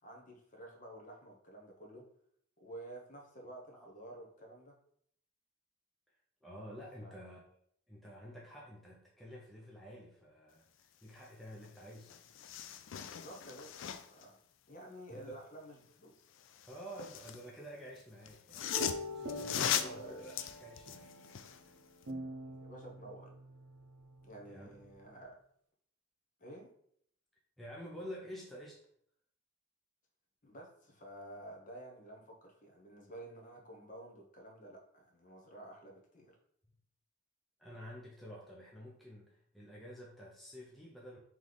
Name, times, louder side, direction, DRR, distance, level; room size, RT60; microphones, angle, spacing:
voice 1, 0.0-2.0 2.6-4.7 7.0-7.2 13.0-14.4 14.7-16.3 19.8-20.3 22.6-23.3 24.2-25.4 26.4-26.7 30.4-36.4, right 1 dB, 40° left, 0 dB, 0.9 m, -51 dB
voice 2, 6.4-7.4 7.9-12.1 15.1-15.4 16.7-18.8 19.1-20.3 20.6-21.1 24.5-24.8 27.6-28.8 37.6-41.2, equal, ahead, -5 dB, 0.5 m, -49 dB
sound 1, 11.6-11.7 12.0-14.2 16.4-17.5 18.3-21.6 22.0-22.1, left 9 dB, 70° left, 0.3 m, -39 dB
sound 2, 18.7-25.2, left 1 dB, 65° right, 0.6 m, -46 dB
3.3 x 3.0 x 3.9 m, 0.67 s
head